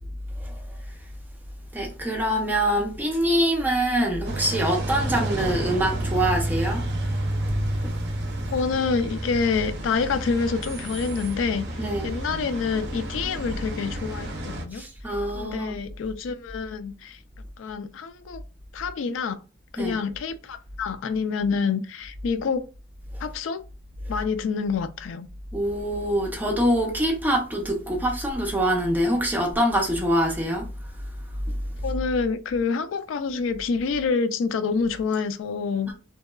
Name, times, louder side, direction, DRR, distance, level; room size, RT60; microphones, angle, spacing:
voice 1, 1.7-6.9 7.8-7.9 11.8-12.1 14.7-15.8 19.8-20.0 23.1-23.2 25.5-30.7 35.9-36.0, right 1 dB, 10° right, 0.6 m, -24 dB
sound 1, 4.2-14.6, right 1 dB, 55° right, 0.5 m, -30 dB
voice 2, 8.5-14.8 15.3-17.2 17.6-18.4 18.7-19.4 19.7-22.7 23.2-23.6 24.1-25.3 31.8-35.9, left 5 dB, 85° left, 0.3 m, -27 dB
2.8 x 2.2 x 2.2 m
head